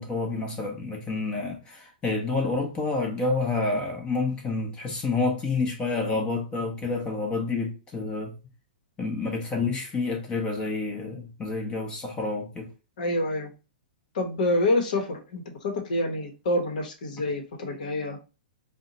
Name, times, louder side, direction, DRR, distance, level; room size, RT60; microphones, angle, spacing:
voice 1, 0.0-8.3 9.0-12.7, left 3 dB, 20° left, 0.9 m, -29 dB
voice 2, 13.0-13.5 14.1-18.2, left 2 dB, 55° left, 1.0 m, -27 dB
3.7 x 2.2 x 3.9 m
figure-of-eight pair, 110°, 5 cm